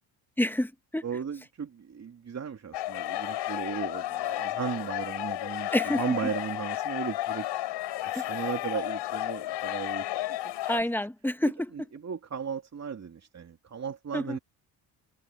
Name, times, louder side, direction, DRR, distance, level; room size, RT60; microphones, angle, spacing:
voice 1, 0.4-1.1 5.7-6.0 8.1-8.3 10.7-11.7 14.1-14.4, left 1 dB, 5° left, 1.8 m, -28 dB
voice 2, 1.0-7.5 8.0-10.1 10.7-10.9 11.9-14.4, right 7 dB, 40° right, 2.7 m, -36 dB
sound 1, 2.7-10.8, left 15 dB, 75° left, 5.1 m, -32 dB
supercardioid pair, 80°, 43 cm